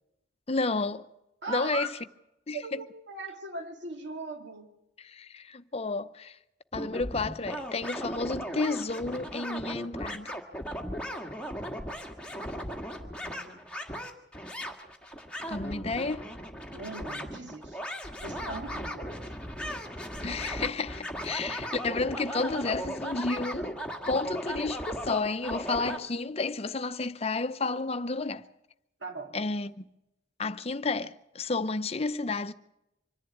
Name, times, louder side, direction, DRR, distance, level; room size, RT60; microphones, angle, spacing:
voice 1, 0.5-1.1 1.5-1.9 2.5-2.6 5.0-6.4 6.7-10.4 15.5-16.3 20.2-28.4 29.3-29.9 30.4-32.5, left 3 dB, 35° left, 0.7 m, -31 dB
voice 2, 1.4-1.9 2.5-4.7 12.4-13.6 16.7-17.8 18.2-19.3 29.0-29.4, right 2 dB, 75° right, 2.6 m, -40 dB
sound 1, 6.7-26.0, equal, 5° left, 1.7 m, -37 dB
25.0 x 11.0 x 9.4 m
head